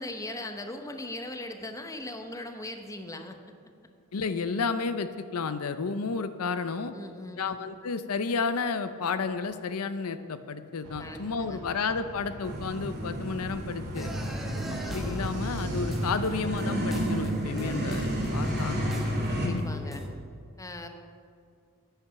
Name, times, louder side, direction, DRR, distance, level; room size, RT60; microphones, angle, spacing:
voice 1, 0.0-3.5 6.9-7.5 11.0-11.7 19.3-20.0 20.6-20.9, left 1 dB, 15° left, 6 dB, 0.8 m, -39 dB
voice 2, 4.1-6.9 7.4-14.1 14.9-19.6, left 5 dB, 80° left, 11 dB, 0.6 m, -32 dB
sound 1, 10.8-16.5, right 2 dB, 75° right, 0.8 m, -42 dB
sound 2, 12.4-19.5, right 1 dB, 50° right, 2.7 m, -32 dB
sound 3, 13.9-20.1, equal, ahead, 1.2 m, -35 dB
10.0 x 9.1 x 5.9 m, 2.3 s
head